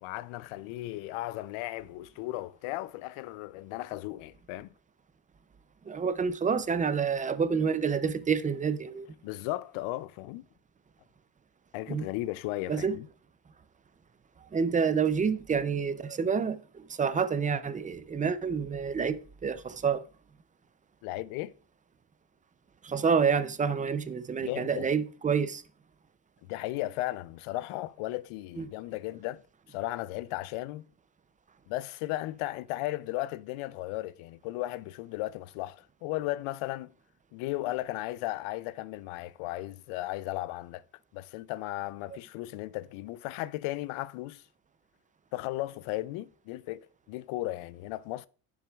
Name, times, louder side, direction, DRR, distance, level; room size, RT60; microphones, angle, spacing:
voice 1, 0.0-4.7 9.2-10.4 11.7-13.1 21.0-21.5 24.4-24.9 26.5-29.4 29.7-30.9 31.7-36.9 37.3-40.8 41.1-44.4 45.3-48.3, left 17 dB, 85° left, 0.6 m, -35 dB
voice 2, 5.9-9.1 11.9-12.0 12.7-13.0 14.5-20.0 22.8-25.6 28.6-28.7, right 6 dB, 20° right, 0.3 m, -28 dB
10.0 x 7.2 x 2.3 m
cardioid pair, 120°, 48 cm